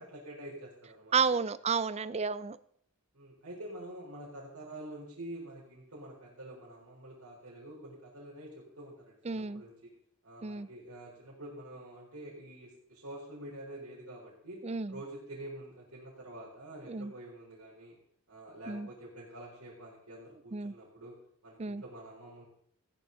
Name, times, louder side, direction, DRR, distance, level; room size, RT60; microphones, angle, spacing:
voice 1, 0.0-1.3 3.1-9.9 10.2-18.0 18.3-21.2 21.4-22.4, right 1 dB, 80° right, -8 dB, 4.0 m, -47 dB
voice 2, 1.1-2.6 9.3-9.6 10.4-10.7 14.6-14.9 16.9-17.1 18.7-18.9 20.5-20.7 21.6-21.8, right 5 dB, 30° right, 17 dB, 0.4 m, -31 dB
15.0 x 11.0 x 3.9 m, 0.64 s
head